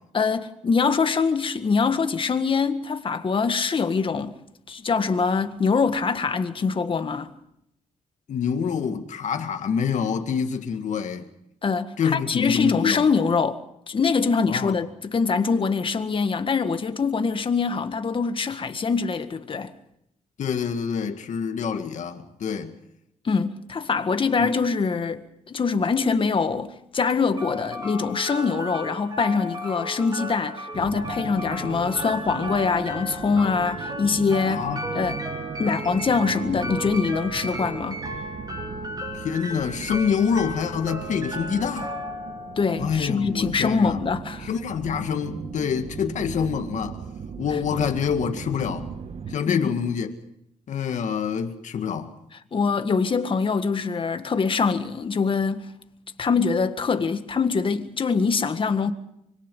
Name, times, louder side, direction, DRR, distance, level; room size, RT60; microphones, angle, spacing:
voice 1, 0.1-4.3 4.7-7.3 11.6-13.6 13.9-19.7 23.2-34.7 34.9-35.2 35.6-38.0 42.6-44.5 49.5-49.7 52.5-55.7 56.2-58.9, left 5 dB, 40° left, 1.7 m, -24 dB
voice 2, 8.3-11.3 12.0-13.1 14.4-14.8 20.4-22.7 24.4-24.5 34.5-34.8 39.1-41.9 42.8-44.0 44.4-47.0 47.4-48.9 49.3-50.1 50.7-52.1, left 7 dB, 65° left, 2.0 m, -26 dB
sound 1, 27.4-43.4, equal, 30° right, 7.5 m, -35 dB
sound 2, 30.7-49.4, right 6 dB, 55° right, 1.3 m, -38 dB
25.0 x 22.5 x 5.5 m
cardioid pair, 95°, 13 cm